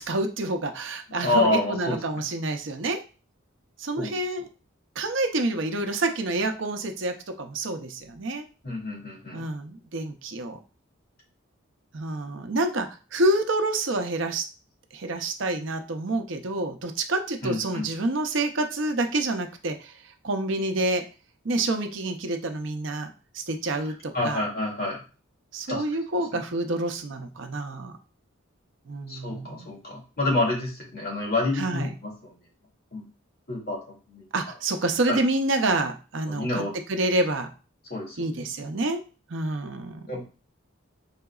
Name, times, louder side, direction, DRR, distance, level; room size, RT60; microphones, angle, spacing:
voice 1, 0.0-3.0 3.8-4.4 5.0-8.4 9.3-10.6 11.9-14.4 14.9-19.9 20.2-21.0 21.4-24.4 25.5-27.9 28.9-29.7 31.6-31.9 34.3-36.6 36.9-37.5 38.2-39.0 39.3-40.1, right 2 dB, 65° right, 6 dB, 0.6 m, -28 dB
voice 2, 1.2-2.2 4.0-4.2 8.6-9.4 17.4-17.8 24.1-25.0 25.7-25.8 26.1-26.4 29.1-32.3 32.9-33.0 33.5-33.8 34.1-34.2 35.1-35.2 36.3-36.7 37.9-38.4 40.1-40.2, left 2 dB, 45° left, -3 dB, 2.3 m, -28 dB
5.6 x 3.9 x 2.3 m, 0.34 s
head